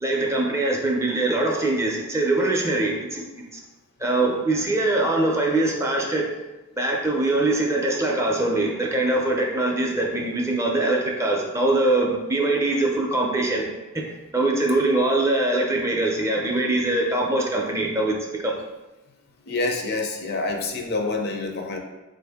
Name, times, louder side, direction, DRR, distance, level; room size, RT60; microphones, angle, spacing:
voice 1, 0.0-3.2 3.5-3.6 4.0-6.3 6.8-13.7 13.9-14.0 14.3-18.6, right 2 dB, 15° right, 0 dB, 0.4 m, -23 dB
voice 2, 19.5-21.8, left 3 dB, 50° left, 3 dB, 0.5 m, -27 dB
3.8 x 2.6 x 3.4 m, 1.1 s
head